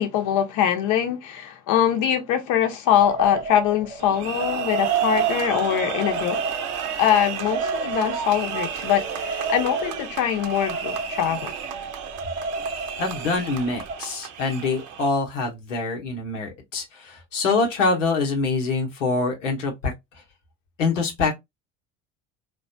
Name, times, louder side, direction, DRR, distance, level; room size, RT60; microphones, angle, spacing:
voice 1, 0.0-6.4 7.0-11.5, left 10 dB, 55° left, 0.8 m, -23 dB
sound 1, 3.0-14.0, right 3 dB, 20° right, 0.6 m, -34 dB
sound 2, 4.0-15.1, right 8 dB, 55° right, 0.8 m, -30 dB
voice 2, 13.0-19.9 20.8-21.3, left 3 dB, 85° left, 0.9 m, -25 dB
3.2 x 2.2 x 2.6 m
hypercardioid pair, 65°, 36 cm